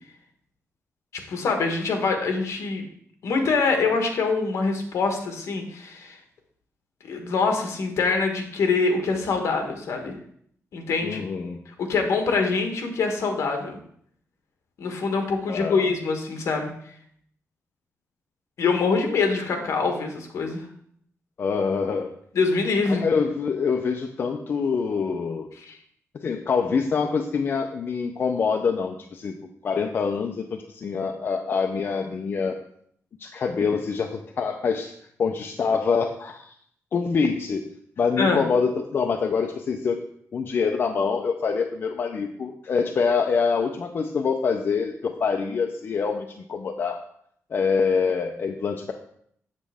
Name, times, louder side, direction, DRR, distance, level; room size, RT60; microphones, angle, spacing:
voice 1, 1.3-2.9 3.2-6.2 7.0-10.1 10.7-11.2 11.8-13.8 14.8-16.7 18.6-20.6 22.3-23.0 25.6-25.8 38.2-38.4, left 4 dB, 60° left, 4 dB, 1.3 m, -24 dB
voice 2, 11.0-11.6 15.5-15.9 21.4-22.1 22.9-25.5 26.1-29.3 29.6-32.5 33.2-34.9 35.2-36.5 36.9-37.6 38.0-40.0 40.3-47.0 47.5-48.9, left 5 dB, 40° left, 4 dB, 0.5 m, -25 dB
7.4 x 7.3 x 3.4 m, 0.65 s
wide cardioid pair, 180°, 5 cm